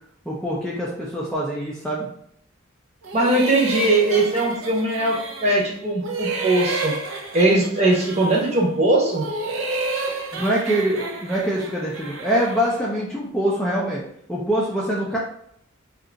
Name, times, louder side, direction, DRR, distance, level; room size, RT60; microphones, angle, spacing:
voice 1, 0.3-2.1 10.3-14.0 14.3-15.2, right 1 dB, 5° left, -6 dB, 0.4 m, -24 dB
sound 1, 3.0-5.7 6.0-8.6 9.0-12.8, right 3 dB, 70° right, 0.5 m, -30 dB
voice 2, 3.1-5.1 5.4-9.2, right 2 dB, 30° right, -3 dB, 0.9 m, -20 dB
2.7 x 2.5 x 3.8 m, 0.69 s
head